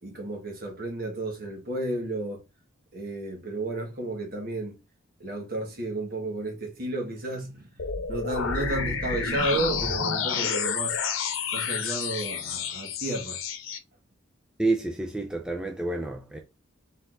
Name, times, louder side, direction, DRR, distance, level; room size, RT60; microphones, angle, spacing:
voice 1, 0.0-2.4 2.9-4.7 5.2-7.7 8.1-11.0 11.5-13.4, right 2 dB, 45° right, 1.5 m, -32 dB
sound 1, 7.8-13.8, left 6 dB, 80° left, 0.8 m, -30 dB
voice 2, 14.6-16.4, right 2 dB, 5° right, 0.4 m, -29 dB
4.2 x 4.1 x 2.5 m
head